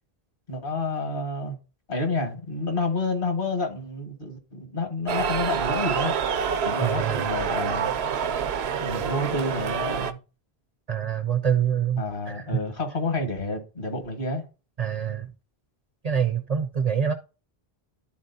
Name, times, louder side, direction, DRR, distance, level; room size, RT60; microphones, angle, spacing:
voice 1, 0.5-1.6 1.9-6.1 6.6-8.0 8.8-10.2 12.0-14.4, left 2 dB, 60° left, 1.7 m, -29 dB
sound 1, 5.1-10.1, right 7 dB, 85° right, 0.9 m, -27 dB
voice 2, 6.8-7.3 10.9-12.5 14.8-15.3 16.0-17.1, right 8 dB, 50° right, 0.5 m, -26 dB
12.0 x 4.1 x 2.6 m
omnidirectional pair, 1.0 m